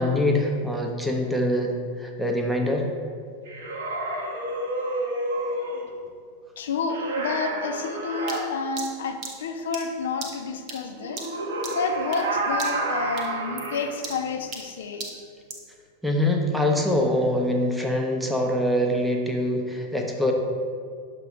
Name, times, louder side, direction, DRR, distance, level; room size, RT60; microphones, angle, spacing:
voice 1, 0.0-2.9 16.0-20.3, left 1 dB, 5° right, 1 dB, 0.7 m, -24 dB
Zombie Growling, 3.5-5.9 6.9-8.4 11.0-13.9, right 2 dB, 65° right, 0.9 m, -29 dB
voice 2, 6.6-11.2 11.7-15.1, left 4 dB, 60° left, 5 dB, 0.5 m, -30 dB
tikkie wet loop, 8.3-12.3 12.6-12.9 13.2-15.7, right 3 dB, 35° right, 0.9 m, -39 dB
6.8 x 2.9 x 4.9 m, 2.2 s
figure-of-eight pair, 90°, 0 cm